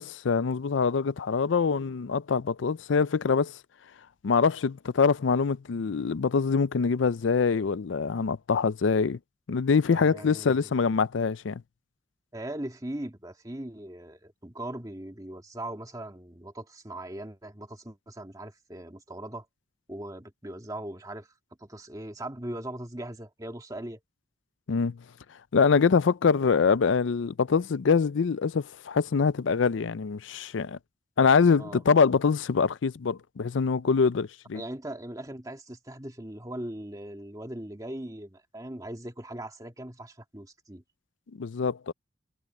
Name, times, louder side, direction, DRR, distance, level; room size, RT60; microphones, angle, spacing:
voice 1, 0.0-3.6 4.2-9.2 9.5-11.6 24.7-25.0 25.5-30.8 31.2-34.6 41.4-41.9, left 5 dB, 80° left, 0.5 m, -24 dB
voice 2, 9.9-10.8 12.3-19.5 19.9-21.3 21.6-24.0 31.6-31.8 34.5-40.8, right 1 dB, 20° right, 1.9 m, -39 dB
head